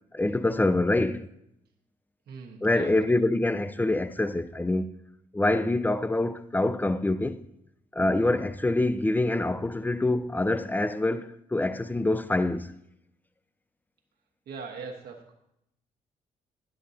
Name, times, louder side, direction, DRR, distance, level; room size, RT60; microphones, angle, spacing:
voice 1, 0.1-1.3 2.6-4.9 5.3-7.4 7.9-12.7, left 2 dB, 10° left, 0.5 m, -25 dB
voice 2, 2.3-3.2 14.5-15.3, right 5 dB, 70° right, 1.4 m, -41 dB
10.0 x 7.8 x 2.8 m
hypercardioid pair, 45°, 17 cm